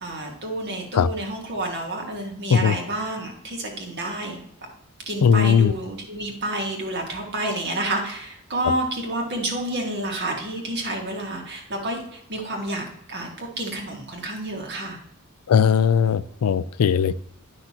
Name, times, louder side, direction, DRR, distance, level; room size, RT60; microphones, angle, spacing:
voice 1, 0.0-4.4 5.1-15.0, right 1 dB, 50° right, 1 dB, 1.7 m, -29 dB
voice 2, 5.2-5.7 15.5-17.1, left 7 dB, 80° left, 16 dB, 0.4 m, -18 dB
10.0 x 5.9 x 2.9 m, 0.73 s
head